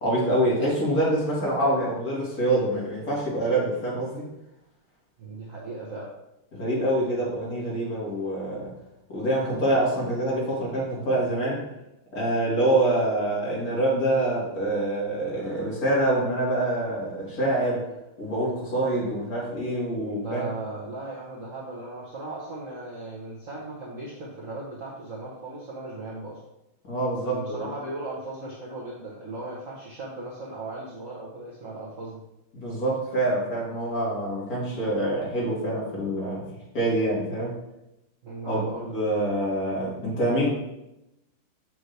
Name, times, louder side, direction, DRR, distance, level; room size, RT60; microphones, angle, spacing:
voice 1, 0.0-4.3 6.5-8.7 9.1-11.6 12.1-17.8 18.2-20.5 26.8-27.7 32.5-36.4 36.7-37.5 38.5-38.6 38.9-40.5, right 1 dB, 40° left, -5 dB, 2.4 m, -26 dB
voice 2, 5.2-6.1 20.0-26.4 27.3-32.2 38.2-38.9, right 2 dB, 45° right, -6 dB, 1.2 m, -37 dB
6.1 x 5.3 x 3.3 m, 0.89 s
omnidirectional pair, 2.4 m